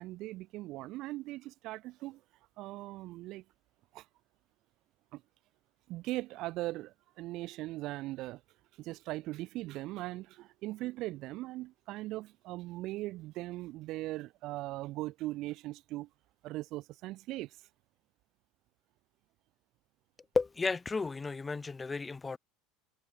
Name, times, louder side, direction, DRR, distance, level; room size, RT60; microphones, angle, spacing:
voice 1, 0.0-2.2 2.6-3.4 3.9-4.1 5.1-5.2 5.9-8.4 8.8-16.1 16.4-17.6, right 18 dB, 50° right, 2.0 m, -39 dB
voice 2, 20.3-22.4, left 4 dB, 15° left, 0.5 m, -33 dB
supercardioid pair, 125°, 0 cm